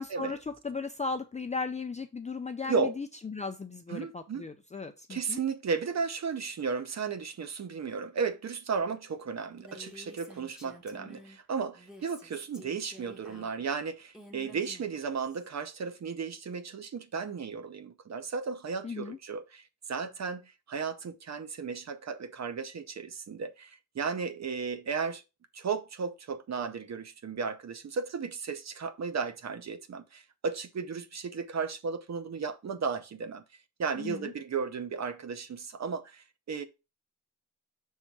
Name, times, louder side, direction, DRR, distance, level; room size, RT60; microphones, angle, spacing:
voice 1, 0.0-5.4 18.8-19.2 34.0-34.3, left 4 dB, 20° left, 0.5 m, -36 dB
voice 2, 2.6-3.0 3.9-4.5 5.1-25.2 25.5-33.4 33.8-36.6, right 5 dB, 55° right, 0.8 m, -34 dB
Female speech woman speaking, 9.5-11.4 11.7-15.5, equal, ahead, 1.5 m, -51 dB
5.6 x 3.7 x 4.6 m
wide cardioid pair, 110°, 32 cm